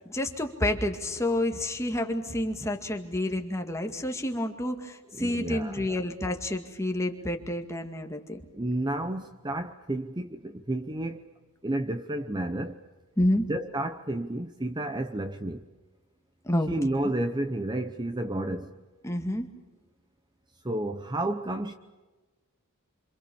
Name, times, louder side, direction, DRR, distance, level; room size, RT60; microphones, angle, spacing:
voice 1, 0.1-8.4 13.2-13.5 16.4-16.7 17.0-17.1 19.0-19.5, left 1 dB, 15° left, 2.1 m, -29 dB
voice 2, 5.1-6.0 8.5-11.2 11.6-12.8 13.4-15.6 16.7-18.7 20.6-21.7, right 1 dB, 20° right, 0.8 m, -31 dB
27.0 x 26.5 x 7.1 m
head